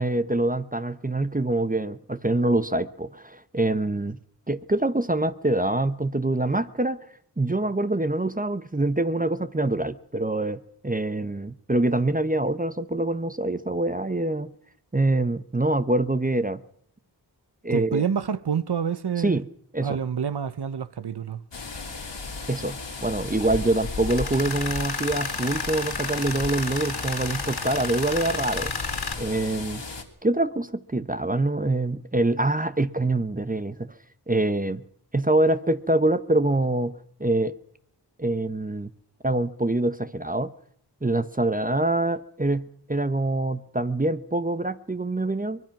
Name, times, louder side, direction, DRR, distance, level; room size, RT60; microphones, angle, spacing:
voice 1, 0.0-4.2 4.5-7.0 7.4-14.5 14.9-16.6 17.6-18.0 19.2-19.5 19.7-20.0 22.5-28.7 29.2-29.8 30.2-33.9 34.3-34.8 35.1-36.9 37.2-37.5 38.2-38.9 39.2-40.5 41.0-45.6, right 2 dB, 20° right, 0.9 m, -25 dB
voice 2, 17.7-19.4 19.8-21.4, right 7 dB, 65° right, 0.9 m, -27 dB
sound 1, 21.5-30.0, left 4 dB, 80° left, 3.2 m, -35 dB
Tools, 24.1-29.1, left 4 dB, 60° left, 3.0 m, -32 dB
24.5 x 21.0 x 6.0 m
wide cardioid pair, 55°, 43 cm